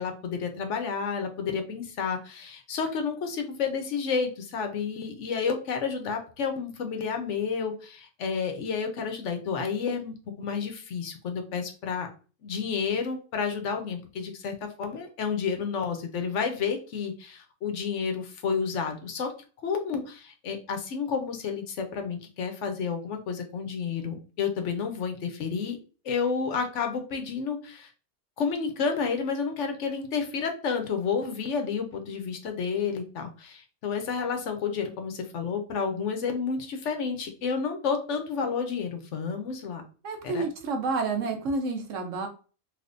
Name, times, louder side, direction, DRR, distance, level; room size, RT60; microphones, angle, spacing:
voice 1, 0.0-12.1 12.4-19.3 19.6-25.8 26.0-27.9 28.4-39.8 40.2-40.4, left 5 dB, 75° left, 5 dB, 1.1 m, -30 dB
voice 2, 40.0-42.3, right 3 dB, 85° right, 5 dB, 1.2 m, -29 dB
3.4 x 3.1 x 2.5 m, 0.36 s
omnidirectional pair, 1.3 m